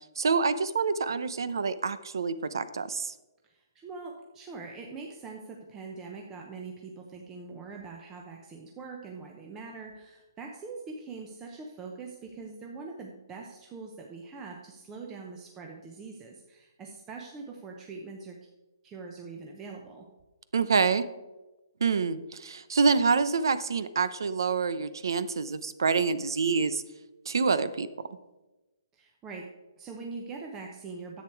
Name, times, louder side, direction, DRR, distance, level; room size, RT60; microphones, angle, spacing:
voice 1, 0.2-3.1 20.5-21.0 21.8-26.8 27.3-27.9, right 5 dB, 75° right, 14 dB, 0.8 m, -27 dB
voice 2, 3.4-18.4 18.8-20.0 28.9-29.5 29.8-31.2, right 4 dB, 15° right, 0 dB, 0.8 m, -43 dB
10.5 x 8.1 x 4.6 m, 1.1 s
hypercardioid pair, 165°, 2 cm